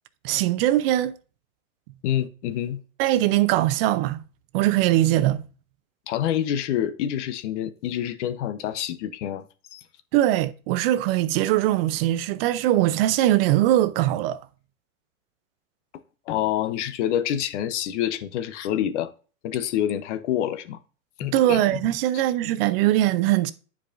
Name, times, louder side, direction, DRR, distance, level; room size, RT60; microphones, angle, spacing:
voice 1, 0.2-1.2 3.0-4.2 4.5-5.4 10.1-14.5 21.2-23.5, right 14 dB, 45° right, 0.6 m, -21 dB
voice 2, 2.0-2.8 6.1-9.4 9.7-9.8 16.3-19.1 19.4-20.8 21.2-21.6, left 11 dB, 55° left, 0.9 m, -27 dB
9.7 x 4.7 x 2.5 m
hypercardioid pair, 130°, 43 cm